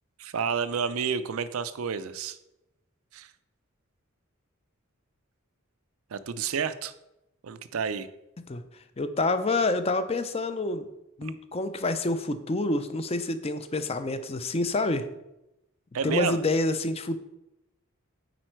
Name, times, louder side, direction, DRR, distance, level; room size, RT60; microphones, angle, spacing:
voice 1, 0.2-2.4 3.1-3.3 6.1-6.9 7.4-8.1 11.2-11.3 15.9-16.4, right 6 dB, 80° right, 13 dB, 0.5 m, -30 dB
voice 2, 9.0-10.9 11.2-15.1 16.0-17.2, left 2 dB, 30° left, 10 dB, 0.5 m, -27 dB
9.0 x 4.3 x 4.5 m, 0.91 s
head